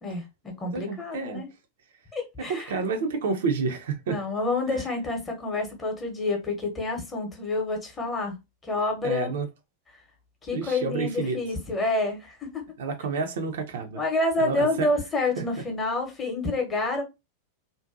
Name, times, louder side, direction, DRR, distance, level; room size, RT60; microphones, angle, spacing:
voice 1, 0.0-1.5 2.1-2.8 4.1-8.4 8.6-9.3 10.4-12.6 13.9-17.0, left 2 dB, 20° left, 0.8 m, -28 dB
voice 2, 0.7-1.4 2.5-4.2 4.7-4.8 9.0-9.5 10.5-11.4 12.8-14.0 14.4-14.9 15.4-15.5, right 4 dB, 60° right, 0.4 m, -29 dB
2.6 x 2.2 x 2.4 m
figure-of-eight pair, 90°, 0 cm